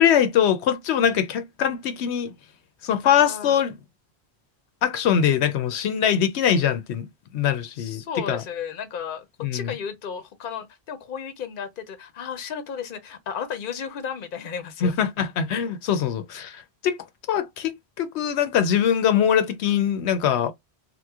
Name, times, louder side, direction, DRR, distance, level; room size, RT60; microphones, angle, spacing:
voice 1, 0.0-2.3 2.8-3.7 4.8-8.4 9.4-9.7 14.8-17.0 17.3-17.7 18.0-20.5, left 9 dB, 85° left, 0.9 m, -22 dB
voice 2, 3.0-3.6 7.8-15.0, left 7 dB, 55° left, 0.7 m, -34 dB
3.0 x 2.1 x 3.5 m
omnidirectional pair, 1.1 m